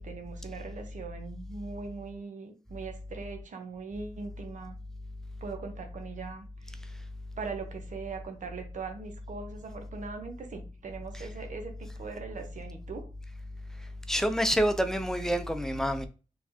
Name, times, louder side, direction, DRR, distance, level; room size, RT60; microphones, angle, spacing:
voice 1, 0.0-4.8 5.4-6.5 7.4-13.1, right 4 dB, 85° right, 0.9 m, -40 dB
voice 2, 14.1-16.1, equal, 5° left, 0.5 m, -27 dB
4.4 x 3.4 x 2.9 m
wide cardioid pair, 115°, 13 cm